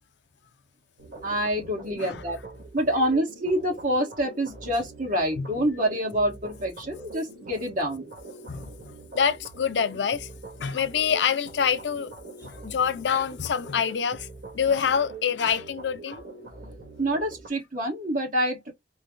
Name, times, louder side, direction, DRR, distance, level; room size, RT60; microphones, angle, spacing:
sound 1, 1.0-17.5, right 3 dB, 75° right, 1.9 m, -44 dB
voice 1, 1.2-2.4 2.7-8.1 17.0-18.7, equal, 50° right, 1.3 m, -27 dB
voice 2, 8.5-10.3 10.6-12.1 12.4-14.3 14.5-16.2, left 7 dB, 90° left, 0.5 m, -26 dB
4.5 x 2.2 x 3.6 m
head